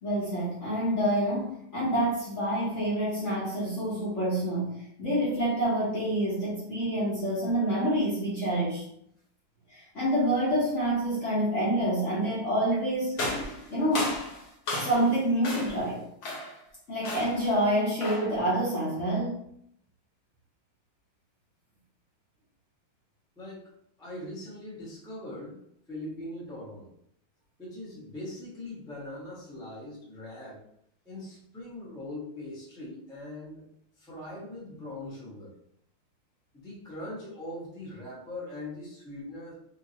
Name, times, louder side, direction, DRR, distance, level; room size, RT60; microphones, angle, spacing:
voice 1, 0.0-8.8 9.7-13.2 13.7-14.1 14.8-16.0 16.9-19.4, right 1 dB, 45° left, -8 dB, 1.2 m, -27 dB
sound 1, 13.2-15.1 15.4-15.9 16.2-16.6 17.0-17.5 18.0-18.4, left 2 dB, 60° left, 1.3 m, -34 dB
voice 2, 23.4-23.7 24.0-25.6 25.9-26.9 27.6-30.6 31.0-33.7 34.0-35.6 36.5-39.5, left 1 dB, 5° left, -7 dB, 0.8 m, -41 dB
3.5 x 3.0 x 2.8 m, 0.71 s
omnidirectional pair, 2.2 m